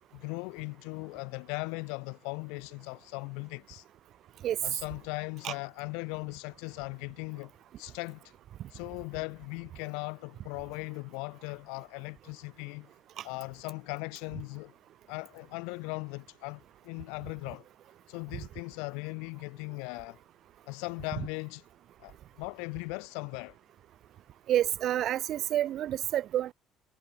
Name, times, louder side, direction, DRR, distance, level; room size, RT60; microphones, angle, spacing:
voice 1, 0.0-3.8 4.6-7.5 7.8-8.3 8.7-12.9 13.2-14.7 15.1-17.7 18.1-20.2 20.7-21.6 22.0-23.6, left 34 dB, 85° left, 5.7 m, -39 dB
voice 2, 24.5-26.5, right 12 dB, 55° right, 2.2 m, -29 dB
supercardioid pair, 100°, 0 cm